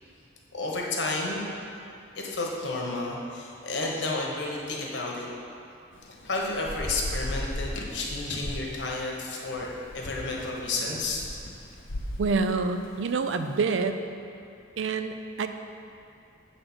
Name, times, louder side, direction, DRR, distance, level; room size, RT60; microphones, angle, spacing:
voice 1, 0.5-1.5 2.1-5.3 6.2-9.7 9.9-11.2, left 2 dB, 65° left, -2 dB, 1.2 m, -31 dB
Thunder / Rain, 5.9-13.6, left 1 dB, 85° left, 0.9 m, -37 dB
voice 2, 12.2-14.0 14.8-15.5, right 4 dB, 75° right, 8 dB, 0.4 m, -27 dB
7.8 x 4.2 x 6.1 m, 2.6 s
head